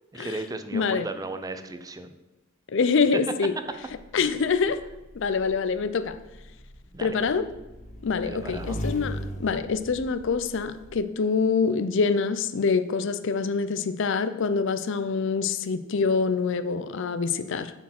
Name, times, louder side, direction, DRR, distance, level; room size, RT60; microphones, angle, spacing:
voice 1, 0.1-2.2 3.1-3.2 6.9-7.2 8.3-8.8, right 2 dB, 20° right, 8 dB, 0.5 m, -35 dB
voice 2, 0.7-1.1 2.7-3.5 4.1-4.8 5.1-6.1 7.0-7.4 8.0-17.7, left 5 dB, 65° left, 12 dB, 0.5 m, -25 dB
Motorcycle / Engine, 3.9-11.0, equal, 35° left, 1.0 m, -39 dB
7.2 x 4.5 x 5.9 m, 1.0 s
head